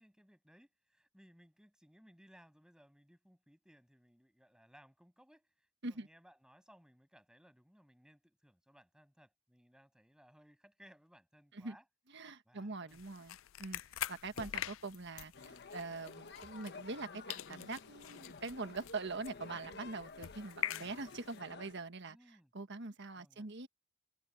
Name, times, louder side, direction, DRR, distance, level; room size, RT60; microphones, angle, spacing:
voice 1, 0.0-11.8 12.2-13.0 14.3-14.7 22.1-22.5 23.1-23.5, equal, 5° right, 7.5 m, -64 dB
voice 2, 12.1-13.8 14.1-22.2 22.5-23.7, right 3 dB, 60° right, 1.5 m, -43 dB
sound 1, 12.9-17.0 17.3-21.4, left 11 dB, 70° left, 0.4 m, -45 dB
sound 2, 15.3-21.7, left 4 dB, 55° left, 1.4 m, -52 dB
head